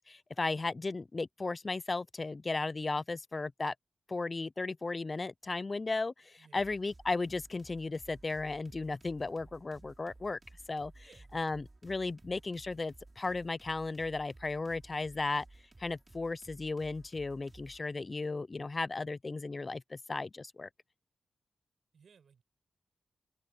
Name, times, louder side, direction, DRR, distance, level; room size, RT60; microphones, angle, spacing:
voice 1, 0.0-3.7 4.1-10.4 10.7-10.9 11.3-15.5 15.8-20.7, left 3 dB, 30° left, 0.4 m, -35 dB
sound 1, 6.5-17.8, right 2 dB, 25° right, 5.2 m, -56 dB
voice 2, 11.0-11.3 21.9-22.4, right 6 dB, 70° right, 6.7 m, -62 dB
wide cardioid pair, 110°, 0 cm